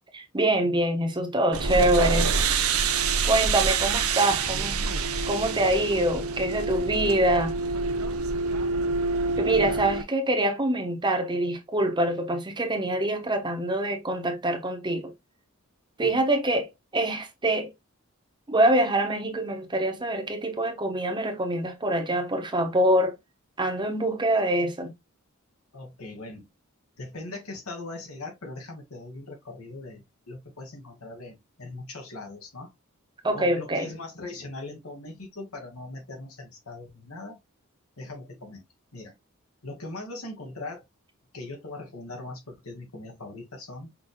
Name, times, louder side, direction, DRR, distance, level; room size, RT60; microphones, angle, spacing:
voice 1, 0.1-2.3 3.2-4.8 5.3-7.6 9.4-15.1 16.0-17.7 18.5-23.2 23.6-24.9 33.2-33.9, right 1 dB, 20° right, 1.0 m, -25 dB
sound 1, 1.5-10.0, right 4 dB, 85° right, 0.8 m, -26 dB
voice 2, 25.7-26.5 27.0-32.7 33.3-37.4 38.0-38.6 38.9-39.2 39.6-40.8 41.3-43.9, left 2 dB, 90° left, 2.1 m, -40 dB
5.9 x 3.5 x 2.2 m
head